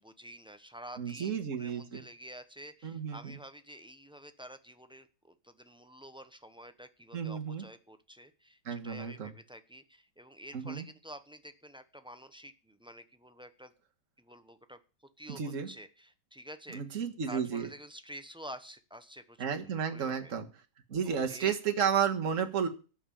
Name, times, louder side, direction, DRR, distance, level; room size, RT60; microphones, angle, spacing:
voice 1, 0.0-13.7 14.2-14.8 15.2-20.3 21.0-21.6, equal, 5° right, 9 dB, 0.6 m, -49 dB
voice 2, 1.0-2.0 2.8-3.4 7.1-7.6 8.7-9.3 10.5-10.9 15.3-15.7 16.7-17.7 19.4-20.5 20.9-22.7, right 7 dB, 50° right, 4 dB, 1.8 m, -32 dB
12.5 x 6.2 x 8.8 m, 0.35 s
omnidirectional pair, 1.9 m